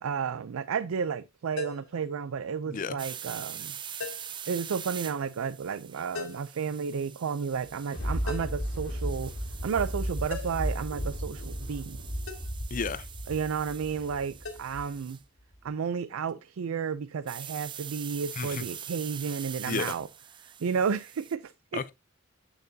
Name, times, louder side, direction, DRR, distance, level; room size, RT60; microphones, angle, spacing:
voice 1, 0.0-3.7 4.5-9.3 9.6-12.0 13.3-15.2 15.6-20.1 20.4-21.9, right 6 dB, 85° right, 0.4 m, -32 dB
sound 1, 1.6-2.0 4.0-4.4 6.1-6.5 8.3-8.7 10.3-10.7 12.3-12.5 14.4-14.6, left 3 dB, 80° left, 1.7 m, -38 dB
voice 2, 2.7-3.0 12.7-13.0 18.4-18.6 19.6-19.9 21.7-21.9, left 5 dB, 40° left, 0.5 m, -32 dB
sound 2, 3.0-15.2 17.3-21.3, right 9 dB, 25° right, 0.4 m, -44 dB
Thunder, 7.7-15.0 15.5-15.6, equal, 60° left, 1.7 m, -35 dB
8.3 x 6.7 x 2.7 m
head